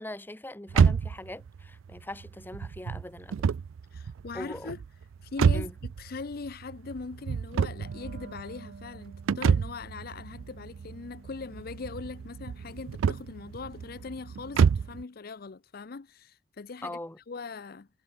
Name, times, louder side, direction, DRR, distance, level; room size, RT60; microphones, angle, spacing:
voice 1, 0.0-3.5 4.3-4.7 5.5-5.7 16.8-17.2, left 1 dB, 10° left, 0.9 m, -41 dB
sound 1, 0.7-15.0, right 6 dB, 85° right, 0.4 m, -29 dB
voice 2, 3.9-4.8 5.2-17.0 17.3-17.9, left 4 dB, 50° left, 0.5 m, -41 dB
Wind instrument woodwind instrument, 7.6-12.7, right 3 dB, 60° right, 0.8 m, -51 dB
head